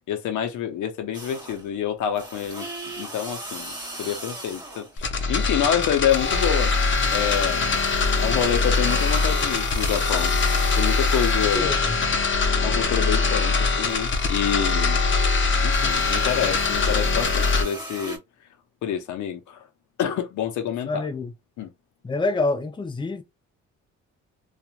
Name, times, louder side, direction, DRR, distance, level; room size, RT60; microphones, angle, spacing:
voice 1, 0.1-2.7 3.0-6.7 7.1-7.7 8.2-10.3 10.8-11.7 12.6-15.0 15.6-18.2 18.8-19.6 20.0-21.1 21.6-21.7, left 9 dB, 75° left, 0.7 m, -27 dB
sound 1, 1.1-1.7 2.1-5.0 5.3-12.1 12.5-18.2, right 1 dB, 15° right, 1.2 m, -39 dB
sound 2, 5.0-17.6, left 4 dB, 40° left, 0.8 m, -22 dB
voice 2, 11.5-12.0 20.9-21.3 22.0-23.2, left 3 dB, 15° left, 0.5 m, -26 dB
2.9 x 2.4 x 2.4 m
cardioid pair, 90°, 30 cm